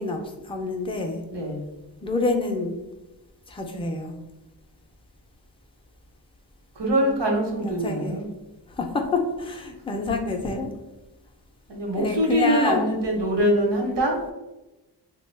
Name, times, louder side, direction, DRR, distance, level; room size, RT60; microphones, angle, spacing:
voice 1, 0.0-1.2 2.0-2.8 3.5-4.2 7.6-8.2 8.7-10.7 11.9-12.9, left 3 dB, 15° left, 3 dB, 0.4 m, -27 dB
voice 2, 1.3-1.6 6.8-8.3 11.7-14.2, right 1 dB, 75° right, 0 dB, 1.0 m, -23 dB
3.4 x 2.2 x 3.2 m, 1.0 s
wide cardioid pair, 85°, 42 cm